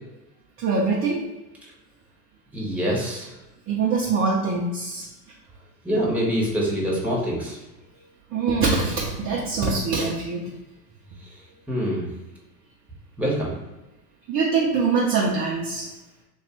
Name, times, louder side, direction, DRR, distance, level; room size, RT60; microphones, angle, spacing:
voice 1, 0.6-1.2 3.7-5.1 8.3-10.4 14.3-15.9, right 4 dB, 25° right, -4 dB, 0.7 m, -23 dB
voice 2, 2.5-3.3 5.8-7.6 11.7-12.1 13.2-13.5, equal, 5° right, -4 dB, 1.3 m, -25 dB
3.2 x 2.6 x 4.4 m, 1.0 s
hypercardioid pair, 105°, 47 cm